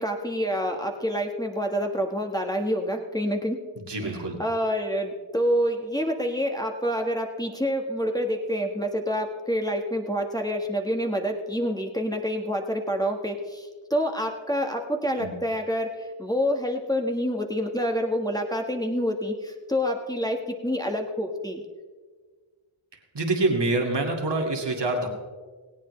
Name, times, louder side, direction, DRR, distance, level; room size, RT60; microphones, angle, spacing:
voice 1, 0.0-3.6 4.0-21.6, equal, 10° left, 2 dB, 1.4 m, -27 dB
voice 2, 3.9-4.4 15.2-15.3 23.1-25.1, right 2 dB, 55° right, 1 dB, 2.1 m, -26 dB
18.0 x 17.5 x 3.2 m, 1.5 s
wide cardioid pair, 65°, 49 cm